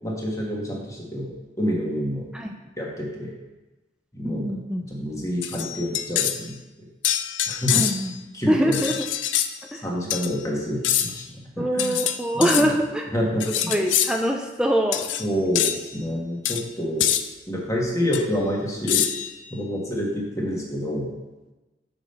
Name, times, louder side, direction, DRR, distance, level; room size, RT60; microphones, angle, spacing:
voice 1, 0.0-2.2 2.8-3.3 4.1-4.5 4.9-6.5 7.5-7.8 8.3-8.8 9.8-11.9 12.3-12.7 13.1-13.7 15.2-17.0 17.5-19.0 19.5-21.2, equal, 15° left, -3 dB, 1.7 m, -27 dB
voice 2, 4.2-4.8 7.7-8.1 8.5-8.9 9.7-9.8 11.6-13.1 13.5-15.1, equal, 5° right, 2 dB, 0.5 m, -24 dB
sound 1, 5.4-6.4 7.0-8.2 8.7-9.5 10.1-10.3 10.8-11.2 11.8-12.6 13.4-14.1 14.9-15.3 15.5-15.8 16.4-16.6 17.0-17.2 18.1-18.2 18.9-19.3, left 11 dB, 75° left, 0.5 m, -25 dB
6.1 x 5.2 x 6.7 m, 1.1 s
head